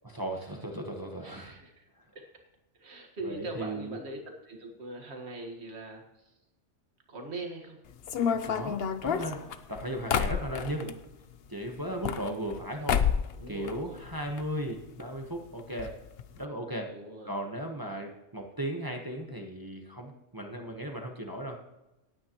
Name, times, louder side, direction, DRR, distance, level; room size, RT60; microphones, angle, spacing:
voice 1, 0.0-1.6 2.0-2.1 3.2-4.0 8.4-9.4 9.7-10.9 11.5-13.1 13.5-16.0 16.3-16.9 17.2-21.6, right 1 dB, 20° right, 1 dB, 1.1 m, -36 dB
voice 2, 1.2-1.9 2.1-2.3 2.7-6.3 7.1-7.8 9.9-10.0 13.4-14.0 16.9-17.4 17.8-18.0, right 2 dB, 60° right, 3 dB, 1.9 m, -42 dB
sound 1, 8.0-11.0 11.8-12.6 12.9-13.3 13.6-14.4 14.7-14.8 15.0-15.1 15.8-15.9 16.2-16.4, left 7 dB, 55° left, 0.9 m, -29 dB
17.5 x 9.5 x 3.0 m, 0.96 s
omnidirectional pair, 1.3 m